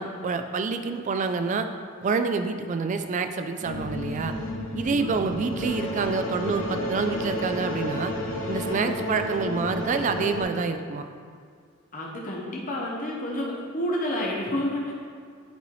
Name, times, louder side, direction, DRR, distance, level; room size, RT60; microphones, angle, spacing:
voice 1, 0.0-1.7 2.0-4.3 4.7-8.1 8.5-11.1, right 4 dB, 35° right, 8 dB, 0.3 m, -27 dB
sound 1, 3.6-10.4, left 1 dB, 75° left, 0.9 m, -31 dB
voice 2, 4.8-5.3 8.6-9.0 11.9-14.9, left 1 dB, 40° left, -3 dB, 0.8 m, -30 dB
8.2 x 4.0 x 3.2 m, 2.2 s
head